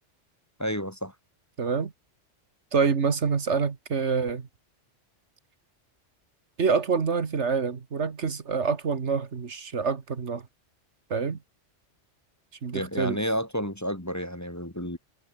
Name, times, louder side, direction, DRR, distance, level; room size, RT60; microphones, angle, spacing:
voice 1, 0.6-1.1 12.7-15.0, equal, 15° left, 1.8 m, -30 dB
voice 2, 1.6-1.9 2.7-4.5 6.6-10.4 11.1-11.4 12.6-13.2, right 5 dB, 65° right, 1.8 m, -26 dB
omnidirectional pair, 1.3 m